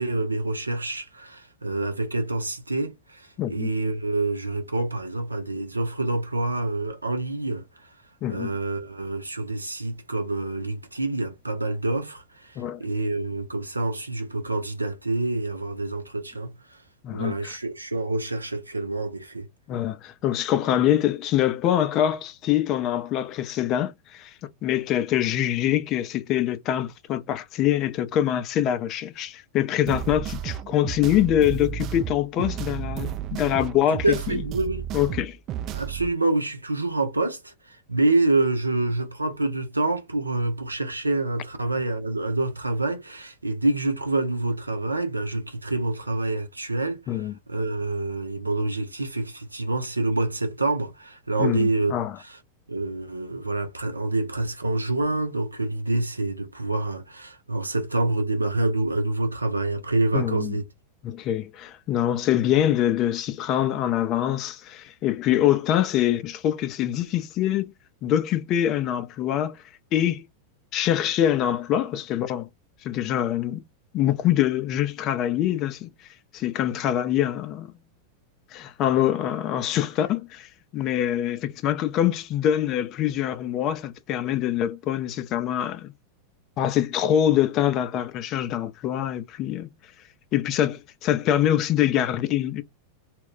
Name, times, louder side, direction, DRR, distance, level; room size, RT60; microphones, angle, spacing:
voice 1, 0.0-7.6 8.3-16.6 17.1-19.5 33.9-34.8 35.7-47.2 47.5-51.9 52.2-52.4 52.7-60.6, right 2 dB, 80° right, 0.6 m, -27 dB
voice 2, 3.4-3.7 8.2-8.5 12.6-12.8 17.0-17.6 19.7-24.3 24.6-34.4 34.9-35.4 47.1-47.3 51.4-52.2 60.1-60.6 61.0-67.7 68.0-69.6 69.9-70.2 70.7-72.5 72.8-73.6 73.9-75.9 76.3-77.7 78.5-85.9 86.6-89.7 90.3-92.6, left 11 dB, 35° left, 0.5 m, -24 dB
sound 1, 29.9-36.1, right 10 dB, 35° right, 0.4 m, -32 dB
2.2 x 2.2 x 3.7 m
figure-of-eight pair, 90°, 0 cm